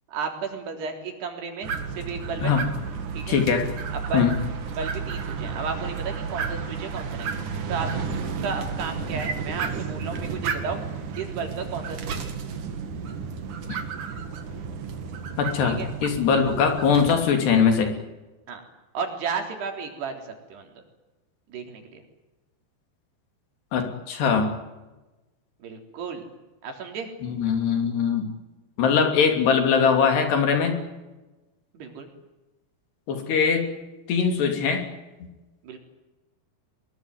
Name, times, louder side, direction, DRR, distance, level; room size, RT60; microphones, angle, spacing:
voice 1, 0.1-2.5 3.1-3.4 3.9-4.3 4.7-7.3 7.7-7.9 8.4-10.8 11.2-12.3 15.6-15.9 18.5-18.6 18.9-20.8 21.5-22.0 25.6-26.3 26.6-27.1 31.7-32.1 35.6-35.8, right 5 dB, 70° right, 4 dB, 5.7 m, -33 dB
sound 1, 1.6-17.1, right 5 dB, 50° right, 3.2 m, -32 dB
voice 2, 3.3-3.7 4.1-4.3 13.7-13.8 15.4-17.9 23.7-24.5 27.2-28.3 28.8-30.8 33.1-33.7 34.1-34.8, left 6 dB, 70° left, 5 dB, 5.1 m, -21 dB
23.0 x 21.5 x 9.6 m, 1.1 s
omnidirectional pair, 5.0 m